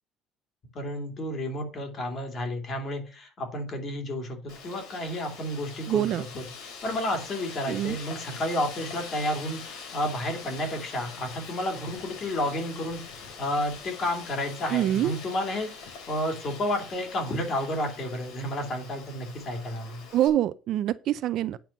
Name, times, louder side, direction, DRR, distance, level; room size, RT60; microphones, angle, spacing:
voice 1, 0.7-6.4 6.8-13.0 13.4-15.7 16.1-20.0, left 1 dB, 30° left, 2.9 m, -31 dB
Wind, 4.5-20.3, left 5 dB, 65° left, 5.0 m, -43 dB
voice 2, 5.9-6.2 7.7-8.0 14.7-15.1 20.1-21.6, right 12 dB, 45° right, 0.5 m, -25 dB
9.1 x 5.8 x 6.5 m
cardioid pair, 180°, 0 cm